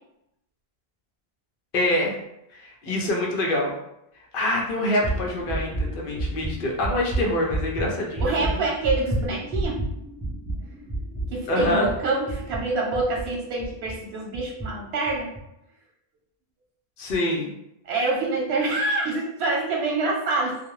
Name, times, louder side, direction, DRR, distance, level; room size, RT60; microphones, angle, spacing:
voice 1, 1.7-2.2 2.5-3.7 4.3-8.6 11.5-11.9 17.0-17.5, left 1 dB, 65° left, 0 dB, 0.7 m, -25 dB
sound 1, 5.0-14.0 14.3-14.7 15.1-15.4, right 2 dB, 15° right, 0.3 m, -30 dB
voice 2, 8.2-9.8 11.3-15.3 17.9-20.6, right 3 dB, 85° right, -2 dB, 0.9 m, -26 dB
2.3 x 2.0 x 3.0 m, 0.82 s
omnidirectional pair, 1.0 m